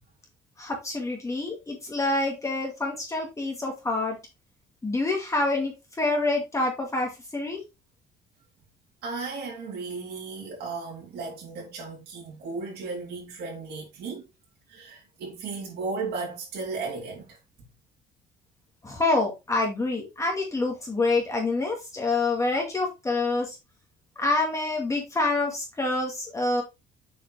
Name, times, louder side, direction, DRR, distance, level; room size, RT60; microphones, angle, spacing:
voice 1, 0.6-4.2 4.8-7.6 18.8-23.6 24.2-26.6, left 2 dB, 20° left, 2.1 m, -27 dB
voice 2, 9.0-14.2 14.7-17.4, right 4 dB, 70° right, 3.6 m, -35 dB
6.9 x 4.9 x 3.4 m
cardioid pair, 110°, 17 cm